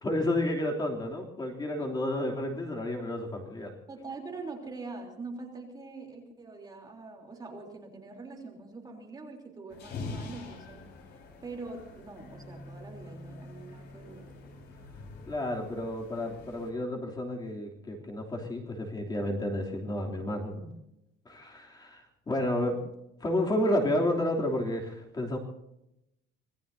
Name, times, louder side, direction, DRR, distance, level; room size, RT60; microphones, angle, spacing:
voice 1, 0.0-3.7 15.2-20.7 21.2-22.8 23.2-25.4, left 1 dB, 20° left, 0 dB, 3.0 m, -31 dB
voice 2, 3.9-10.8 11.4-14.2 22.6-22.7, right 3 dB, 20° right, 1 dB, 3.5 m, -43 dB
sound 1, 9.7-16.7, left 3 dB, 60° left, 4.8 m, -45 dB
26.0 x 19.5 x 2.7 m, 0.84 s
cardioid pair, 160°, 20 cm